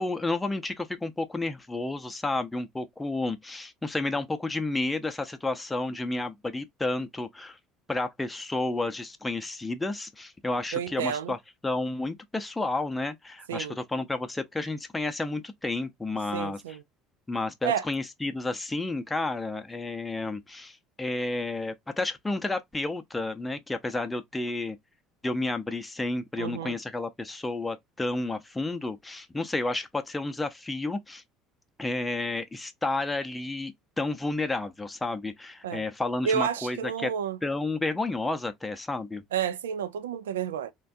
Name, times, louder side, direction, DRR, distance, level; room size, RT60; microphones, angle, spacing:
voice 1, 0.0-7.6 7.9-11.4 11.6-16.6 17.3-24.8 25.2-31.2 31.8-37.1 37.4-39.2, left 2 dB, 15° left, 0.6 m, -31 dB
voice 2, 10.7-11.3 13.5-13.8 16.3-16.8 17.6-17.9 26.4-26.8 35.6-35.8 36.2-37.4 39.3-40.7, right 8 dB, 80° right, 0.4 m, -30 dB
3.1 x 2.3 x 2.6 m
hypercardioid pair, 65°, 0 cm